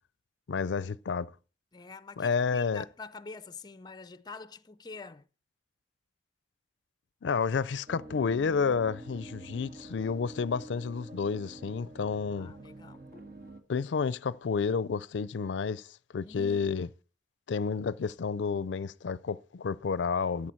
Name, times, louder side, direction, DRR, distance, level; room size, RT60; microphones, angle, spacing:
voice 1, 0.5-1.3 2.2-2.8 7.2-12.5 13.7-16.9 17.5-20.5, left 5 dB, 85° left, 0.4 m, -30 dB
voice 2, 1.7-5.3 12.3-13.3 16.2-16.7, left 4 dB, 25° left, 0.5 m, -46 dB
sound 1, 7.9-13.6, right 1 dB, 55° right, 1.6 m, -47 dB
13.5 x 8.7 x 4.4 m
head